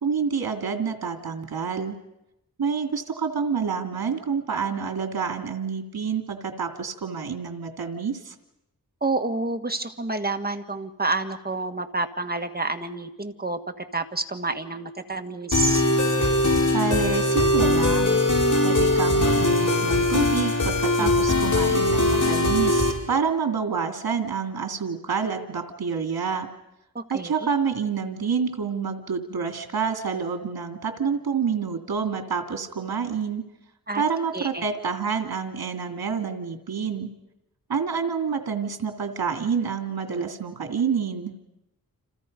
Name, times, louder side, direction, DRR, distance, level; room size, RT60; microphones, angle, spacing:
voice 1, 0.0-2.0 2.6-8.3 16.7-18.2 18.6-26.5 27.1-33.4 33.9-37.1 37.7-41.4, right 6 dB, 85° right, 5 dB, 2.4 m, -28 dB
voice 2, 9.0-15.8 21.0-21.1 27.0-27.5 33.9-34.0 34.3-34.6, right 2 dB, 25° right, 6 dB, 1.8 m, -29 dB
sound 1, 15.5-22.9, left 2 dB, 55° left, 5.2 m, -21 dB
29.5 x 27.5 x 5.4 m, 0.88 s
wide cardioid pair, 90°, 36 cm